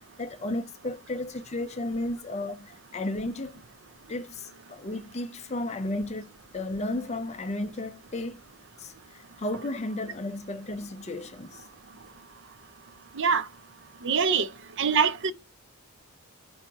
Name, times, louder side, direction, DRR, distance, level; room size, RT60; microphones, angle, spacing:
voice 1, 0.0-3.5 4.1-8.4 8.8-11.6, left 2 dB, 30° left, 0.6 m, -34 dB
voice 2, 13.2-13.5 14.0-14.5 14.8-15.3, right 6 dB, 55° right, 0.6 m, -23 dB
4.6 x 4.4 x 5.7 m
head